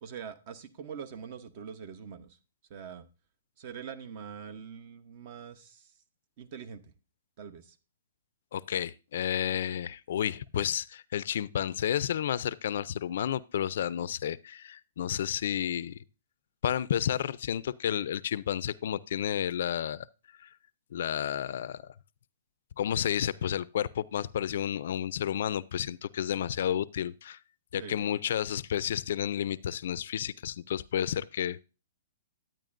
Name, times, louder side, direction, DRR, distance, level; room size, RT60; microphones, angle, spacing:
voice 1, 0.0-2.4 2.7-3.1 3.6-5.9 6.4-6.9 7.4-7.8 27.7-28.0, right 7 dB, 45° right, 0.8 m, -43 dB
voice 2, 8.5-16.0 16.6-20.1 20.9-21.8 22.8-27.4 27.7-31.6, left 10 dB, 65° left, 0.4 m, -31 dB
10.5 x 8.9 x 2.5 m
hypercardioid pair, 135°, 0 cm